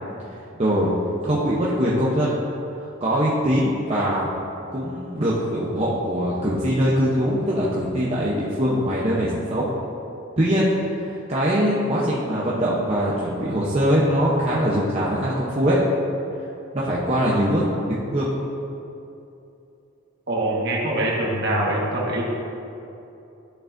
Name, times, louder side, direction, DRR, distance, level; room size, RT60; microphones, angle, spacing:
voice 1, 0.6-1.0 1.2-2.4 2.8-4.3 4.7-9.7 10.4-15.9 16.7-17.6 18.1-18.3, equal, 30° right, -7 dB, 0.8 m, -22 dB
voice 2, 20.3-22.2, right 1 dB, 50° right, -4 dB, 1.4 m, -23 dB
11.5 x 6.7 x 2.6 m, 2.8 s
head